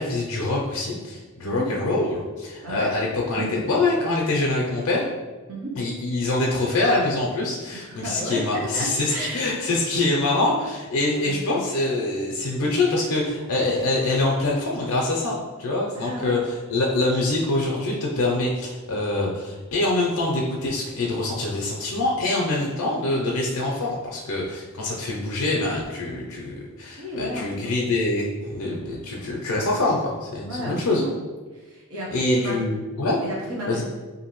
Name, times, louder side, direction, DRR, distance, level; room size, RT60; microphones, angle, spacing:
voice 1, 0.0-5.0 5.8-31.0 32.1-33.2 33.7-33.8, left 2 dB, 70° left, -2 dB, 0.5 m, -25 dB
voice 2, 2.6-2.9 3.4-3.5 5.5-5.7 7.7-9.6 11.2-11.5 15.9-16.4 27.0-27.7 30.4-31.1 31.5-32.6 33.2-33.8, right 1 dB, 70° right, -5 dB, 0.8 m, -32 dB
2.6 x 2.5 x 3.0 m, 1.3 s
head